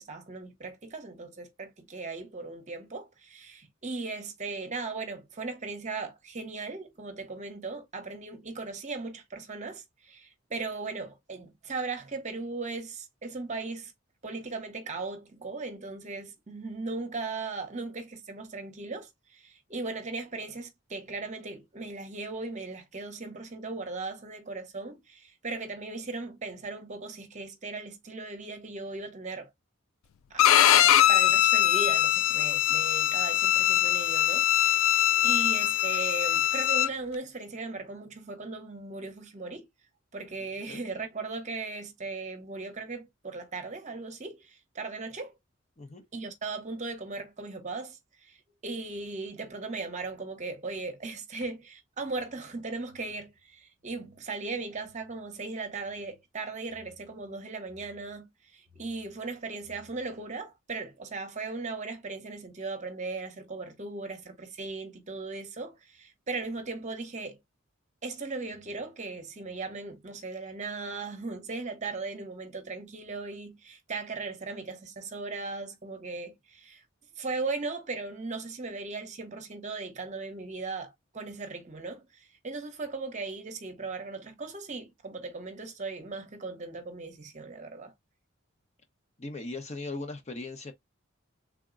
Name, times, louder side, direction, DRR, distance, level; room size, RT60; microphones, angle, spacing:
voice 1, 0.0-13.9 14.2-29.5 30.3-39.7 40.1-45.3 46.1-48.4 48.6-67.4 68.0-76.8 77.2-87.9, right 3 dB, 35° right, 0.8 m, -38 dB
Bowed string instrument, 30.4-36.9, left 12 dB, 85° left, 0.3 m, -22 dB
voice 2, 89.2-90.7, left 2 dB, 35° left, 0.8 m, -38 dB
3.6 x 2.1 x 3.7 m
head